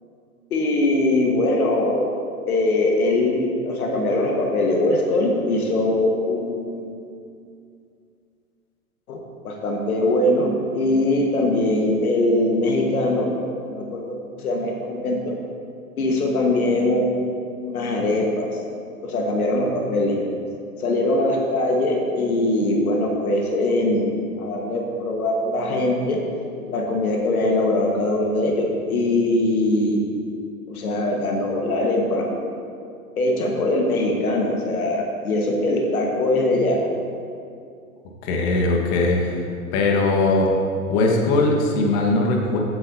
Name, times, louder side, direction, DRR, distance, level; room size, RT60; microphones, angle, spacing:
voice 1, 0.5-2.1 2.5-7.0 9.1-13.3 13.6-15.3 16.0-18.6 19.0-20.2 20.8-26.2 26.7-30.0 30.7-32.3 33.2-36.8, left 1 dB, 75° left, 0 dB, 1.5 m, -22 dB
voice 2, 38.2-39.4 39.7-40.5 40.9-42.6, left 2 dB, 45° left, 1 dB, 1.5 m, -20 dB
15.0 x 7.9 x 2.7 m, 2.4 s
hypercardioid pair, 105°, 44 cm